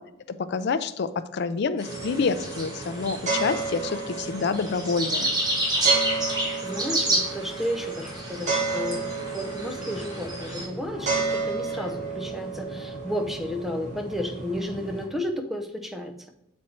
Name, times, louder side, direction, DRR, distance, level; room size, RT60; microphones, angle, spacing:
voice 1, 0.4-5.3, left 4 dB, 60° left, 13 dB, 0.4 m, -27 dB
sound 1, 1.8-10.6, right 2 dB, 20° right, 1.8 m, -30 dB
sound 2, 1.9-15.1, right 4 dB, 40° right, 1.5 m, -32 dB
voice 2, 6.6-9.0 9.3-16.1, left 1 dB, ahead, 5 dB, 0.6 m, -32 dB
6.2 x 4.3 x 4.3 m, 0.82 s
head